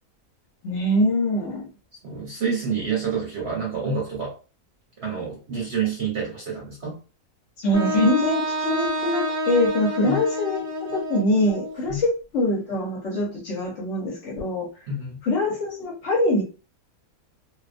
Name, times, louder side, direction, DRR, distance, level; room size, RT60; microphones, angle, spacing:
voice 1, 0.6-1.7 7.6-14.7 15.2-16.4, left 1 dB, 60° left, -2 dB, 0.9 m, -23 dB
voice 2, 2.0-4.4 5.0-7.0 10.0-10.2 11.9-12.0 14.9-15.2, right 5 dB, 55° right, -3 dB, 0.9 m, -28 dB
Wind instrument woodwind instrument, 7.7-11.8, equal, 20° right, 0.4 m, -28 dB
2.5 x 2.1 x 2.5 m, 0.33 s
omnidirectional pair, 1.5 m